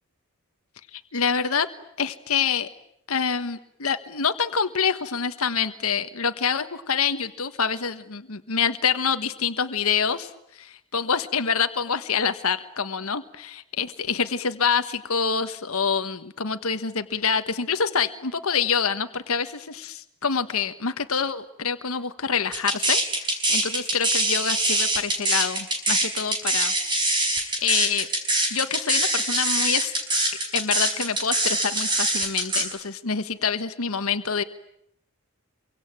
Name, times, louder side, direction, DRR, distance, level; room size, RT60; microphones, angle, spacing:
voice 1, 0.9-1.7 2.0-2.7 3.1-26.7 27.2-28.1 28.5-29.9 30.5-34.4, left 6 dB, 80° left, 9 dB, 1.4 m, -26 dB
sound 1, 22.5-32.6, right 1 dB, 20° right, 5.3 m, -23 dB
27.5 x 24.5 x 9.0 m, 0.75 s
head